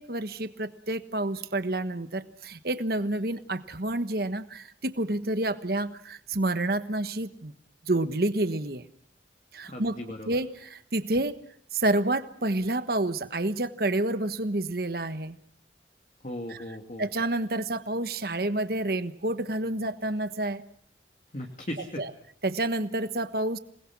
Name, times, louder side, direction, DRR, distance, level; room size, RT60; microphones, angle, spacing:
voice 1, 0.0-7.5 7.8-8.8 9.5-10.0 10.3-11.4 11.7-15.4 16.5-16.6 17.0-20.6 22.0-22.1 22.4-23.6, right 2 dB, 55° right, 11 dB, 1.3 m, -29 dB
voice 2, 9.7-10.4 16.2-17.1 21.3-22.0, left 1 dB, 40° left, 2 dB, 2.6 m, -37 dB
27.0 x 20.5 x 6.1 m, 0.67 s
head